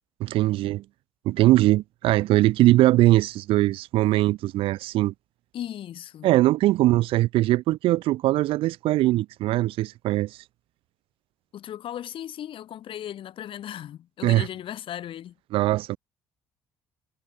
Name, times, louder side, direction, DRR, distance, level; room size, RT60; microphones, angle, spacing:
voice 1, 0.2-0.8 1.3-5.1 6.2-10.4 14.2-14.5 15.5-16.0, right 16 dB, 55° right, 0.5 m, -21 dB
voice 2, 5.5-6.3 11.5-15.4, left 11 dB, 50° left, 3.5 m, -37 dB
figure-of-eight pair, 45°, 11 cm